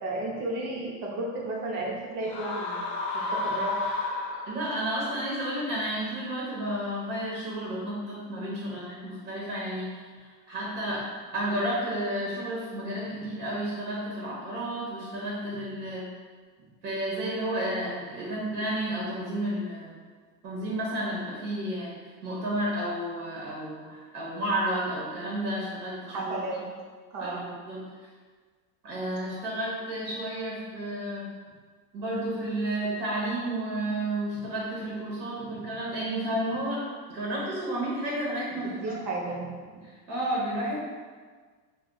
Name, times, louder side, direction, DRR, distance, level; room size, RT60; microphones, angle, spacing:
voice 1, 0.0-2.8 3.3-3.7 13.1-13.2 26.1-26.6 27.1-27.5 38.8-39.5, right 2 dB, 35° right, -3 dB, 0.7 m, -33 dB
sound 1, 2.2-4.9, left 3 dB, 35° left, 0.4 m, -31 dB
voice 2, 4.5-9.9 10.2-11.0 11.3-16.1 16.8-19.9 20.4-21.9 22.2-26.3 27.2-27.8 28.8-31.3 31.9-38.9 39.8-40.8, right 1 dB, 90° right, -6 dB, 1.1 m, -31 dB
2.4 x 2.3 x 3.8 m, 1.5 s
supercardioid pair, 140°, 50 cm